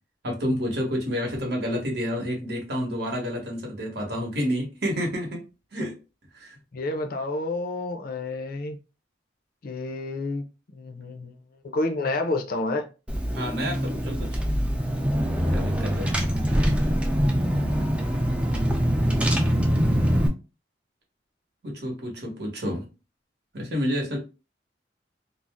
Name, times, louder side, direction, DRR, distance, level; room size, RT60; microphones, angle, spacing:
voice 1, 0.2-5.4 5.7-5.9 6.3-6.6 13.4-14.4 15.5-16.1 21.6-22.9 23.5-24.2, equal, 60° right, 1.0 m, -29 dB
voice 2, 6.7-8.8 9.6-12.9, left 2 dB, 50° left, 0.5 m, -30 dB
Car / Engine, 13.1-20.3, equal, 5° right, 0.3 m, -24 dB
2.5 x 2.0 x 3.3 m
head